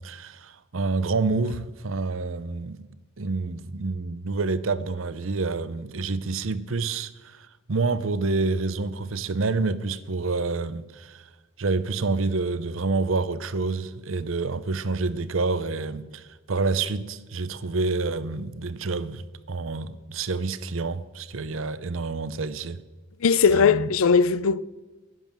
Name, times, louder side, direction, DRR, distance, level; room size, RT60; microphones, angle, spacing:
voice 1, 0.0-2.8 3.2-11.3 11.6-22.8 23.5-23.9, right 3 dB, 75° right, 0.7 m, -28 dB
voice 2, 23.2-24.6, left 5 dB, 85° left, 0.5 m, -19 dB
11.0 x 10.5 x 7.4 m
head